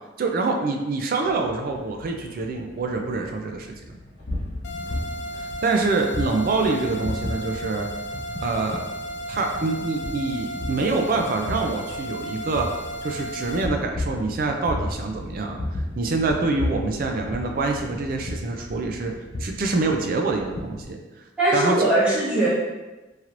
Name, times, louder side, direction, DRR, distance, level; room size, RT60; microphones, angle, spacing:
voice 1, 0.2-4.0 5.4-7.9 8.4-8.8 9.3-12.7 13.0-19.1 19.4-21.0 21.5-21.9, right 3 dB, 50° right, 3 dB, 0.4 m, -26 dB
sound 1, 1.2-20.9, left 1 dB, 85° left, 1.4 m, -35 dB
sound 2, 4.6-13.7, equal, 65° left, 0.3 m, -34 dB
voice 2, 21.4-22.5, right 1 dB, 5° right, -11 dB, 1.1 m, -20 dB
3.1 x 2.9 x 2.5 m, 1.1 s
head